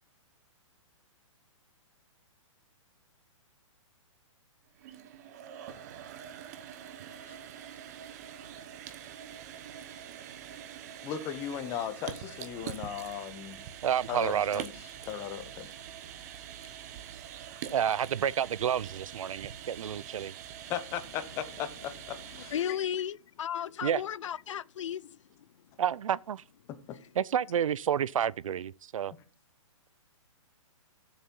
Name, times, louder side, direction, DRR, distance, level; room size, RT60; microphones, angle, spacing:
sound 1, 4.7-22.9, right 9 dB, 30° right, 1.0 m, -45 dB
voice 1, 11.0-13.6 14.1-14.7 15.0-15.7 20.7-22.5 26.7-27.0, left 9 dB, 15° left, 0.8 m, -37 dB
voice 2, 13.8-14.6 17.6-20.3 23.8-24.0 25.8-26.4 27.2-29.1, right 9 dB, 80° right, 0.5 m, -29 dB
voice 3, 22.3-25.5 27.0-27.1, left 9 dB, 65° left, 0.4 m, -35 dB
13.0 x 7.2 x 5.5 m
hypercardioid pair, 170°, 17 cm